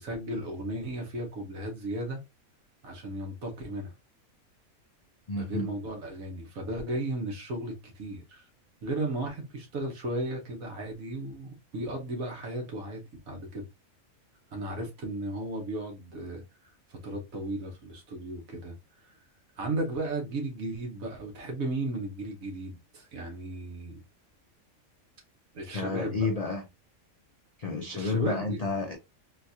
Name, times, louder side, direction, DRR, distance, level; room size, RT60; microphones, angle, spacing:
voice 1, 0.0-2.2 2.8-3.9 5.3-8.5 8.8-13.6 14.5-16.4 16.9-18.7 19.0-19.2 19.6-24.0 25.5-26.3 27.9-28.6, right 1 dB, 75° right, 1.5 m, -35 dB
voice 2, 5.3-5.7 25.7-26.6 27.6-29.0, left 3 dB, 75° left, 0.3 m, -30 dB
3.9 x 2.4 x 2.7 m
omnidirectional pair, 1.5 m